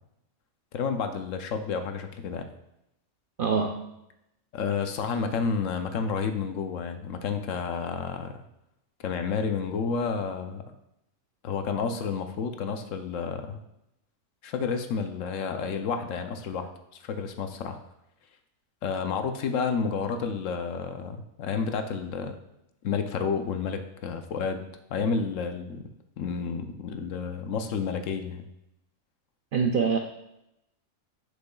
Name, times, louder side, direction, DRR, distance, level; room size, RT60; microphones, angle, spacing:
voice 1, 0.7-2.5 4.5-8.3 9.0-10.6 11.4-13.6 14.4-16.7 17.0-17.8 18.8-22.4 22.8-24.6 24.9-25.8 26.2-28.4, left 5 dB, 75° left, 7 dB, 1.0 m, -30 dB
voice 2, 3.4-3.8 29.5-30.0, right 5 dB, 65° right, 3 dB, 0.5 m, -24 dB
8.3 x 6.1 x 2.3 m, 0.85 s
omnidirectional pair, 1.4 m